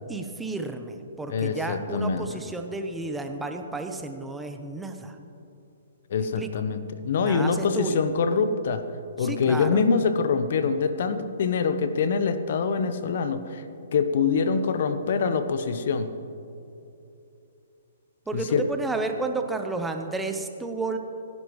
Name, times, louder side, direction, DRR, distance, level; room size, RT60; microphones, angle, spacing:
voice 1, 0.1-5.2 6.4-6.5 7.2-8.0 9.2-9.8 18.3-21.0, right 3 dB, 5° right, 5 dB, 1.0 m, -32 dB
voice 2, 1.3-2.3 6.1-8.9 9.2-13.6 13.9-16.1 18.3-18.6, left 5 dB, 55° left, 11 dB, 0.9 m, -25 dB
27.5 x 11.0 x 3.2 m, 2.8 s
figure-of-eight pair, 125°, 0 cm